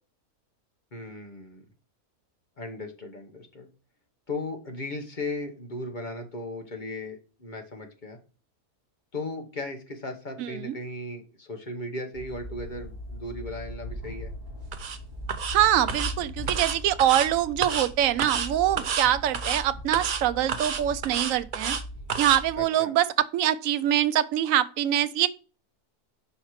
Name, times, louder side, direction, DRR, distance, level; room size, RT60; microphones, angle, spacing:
voice 1, 0.9-1.6 2.6-3.7 4.3-8.2 9.1-14.3 22.6-22.9, left 2 dB, 35° left, 1.0 m, -36 dB
voice 2, 10.4-10.7 15.5-21.8 22.2-25.3, right 12 dB, 70° right, 0.9 m, -24 dB
sound 1, 12.1-22.6, equal, 35° right, 2.8 m, -39 dB
sound 2, 14.7-15.0 15.3-15.6 15.9-16.1 16.5-17.3 17.6-17.9 18.2-18.5 18.8-19.1 19.3-19.6 19.9-20.2 20.5-21.8 22.1-22.4, right 6 dB, 55° right, 0.5 m, -30 dB
5.7 x 4.4 x 4.7 m
omnidirectional pair, 1.6 m